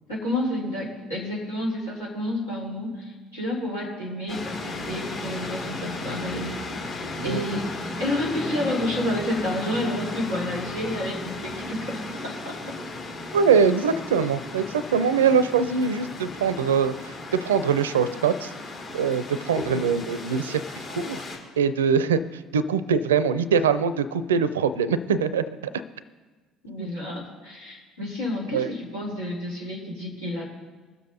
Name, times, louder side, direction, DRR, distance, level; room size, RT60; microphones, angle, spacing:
voice 1, 0.1-6.5 6.8-7.0 7.2-7.7 8.0-12.8 19.1-19.2 26.6-30.4, left 1 dB, 85° left, -8 dB, 3.9 m, -30 dB
sound 1, 4.3-21.4, left 2 dB, 60° left, 3.7 m, -35 dB
voice 2, 13.3-18.5 18.9-21.2 21.6-25.5 26.8-26.9 28.5-28.7, right 6 dB, 80° right, 15 dB, 0.5 m, -23 dB
21.0 x 7.2 x 4.0 m, 1.4 s
figure-of-eight pair, 55°, 0 cm